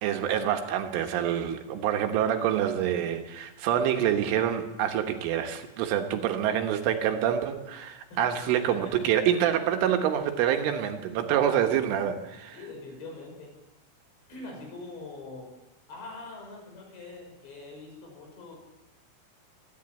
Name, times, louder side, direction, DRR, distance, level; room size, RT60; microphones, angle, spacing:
voice 1, 0.0-12.6, right 10 dB, 75° right, 6 dB, 3.6 m, -26 dB
voice 2, 8.6-9.2 12.5-13.5 14.3-15.5 15.9-18.6, left 3 dB, 60° left, 1 dB, 7.5 m, -43 dB
25.5 x 11.5 x 8.8 m, 1.0 s
omnidirectional pair, 5.9 m